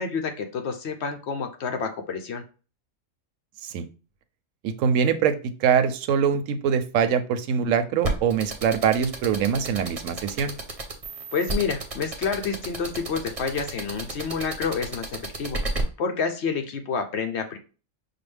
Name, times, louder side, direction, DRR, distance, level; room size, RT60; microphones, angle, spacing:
voice 1, 0.0-2.4 11.3-15.6 16.0-17.6, left 5 dB, 65° left, 5 dB, 0.9 m, -29 dB
voice 2, 4.6-10.5, right 7 dB, 85° right, 10 dB, 1.0 m, -23 dB
sound 1, 8.0-15.8, right 2 dB, 35° right, 0.7 m, -31 dB
5.7 x 2.2 x 3.3 m, 0.35 s
omnidirectional pair, 1.3 m